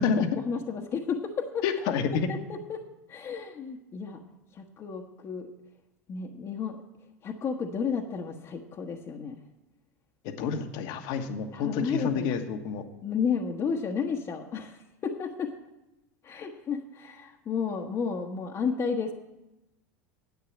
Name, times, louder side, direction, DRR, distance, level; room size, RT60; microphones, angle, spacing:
voice 1, 0.4-1.6 2.3-2.8 3.1-4.2 4.5-5.5 6.1-6.8 7.2-9.4 11.5-12.3 13.0-15.5 16.2-19.1, left 6 dB, 35° left, 0 dB, 1.1 m, -32 dB
voice 2, 1.6-2.3 10.2-12.8, left 6 dB, 60° left, 7 dB, 1.3 m, -29 dB
10.5 x 8.2 x 7.2 m, 0.95 s
hypercardioid pair, 95°, 8 cm